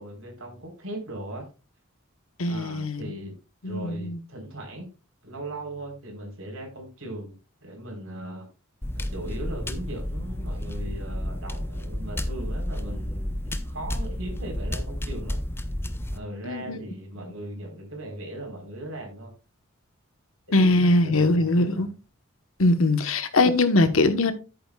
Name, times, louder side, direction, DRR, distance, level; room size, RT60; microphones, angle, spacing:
voice 1, 0.0-1.4 2.4-3.3 3.6-4.9 5.2-7.3 7.6-8.5 8.9-15.4 16.1-19.3 20.5-21.8, right 1 dB, 70° right, 3.8 m, -38 dB
voice 2, 2.4-3.1 3.6-4.2 16.4-16.8 20.5-21.9 22.6-24.3, left 2 dB, 75° left, 1.1 m, -21 dB
sound 1, 8.8-16.2, left 1 dB, 10° left, 0.6 m, -31 dB
10.5 x 8.8 x 2.3 m
head